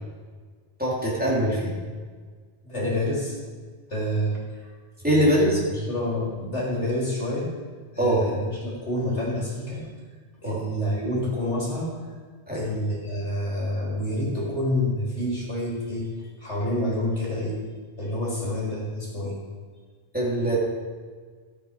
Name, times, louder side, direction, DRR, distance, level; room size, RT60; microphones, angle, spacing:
voice 1, 0.8-1.7 5.0-5.9 8.0-8.2 10.4-10.6 12.5-12.6 20.1-20.6, equal, 10° right, -6 dB, 3.7 m, -22 dB
voice 2, 2.6-3.4 3.9-4.7 5.7-7.5 7.9-9.8 10.4-11.9 12.5-17.6 18.0-19.4, left 1 dB, 85° left, -5 dB, 4.1 m, -28 dB
14.5 x 8.2 x 5.2 m, 1.5 s
omnidirectional pair, 1.1 m